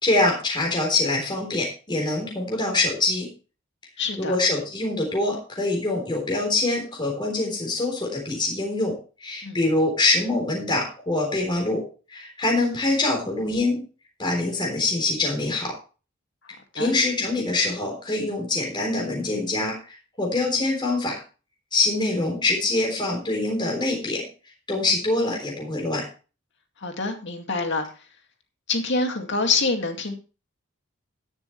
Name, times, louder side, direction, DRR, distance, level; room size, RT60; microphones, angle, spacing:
voice 1, 0.0-3.3 4.2-8.9 9.2-11.8 12.1-13.8 14.2-15.7 16.7-21.2 21.7-24.2 24.7-26.0, left 2 dB, 25° left, 0 dB, 3.7 m, -24 dB
voice 2, 4.0-4.3 9.4-9.6 16.8-16.9 26.8-27.9 28.7-30.1, left 3 dB, 60° left, 5 dB, 2.2 m, -26 dB
12.5 x 11.0 x 3.2 m, 0.34 s
head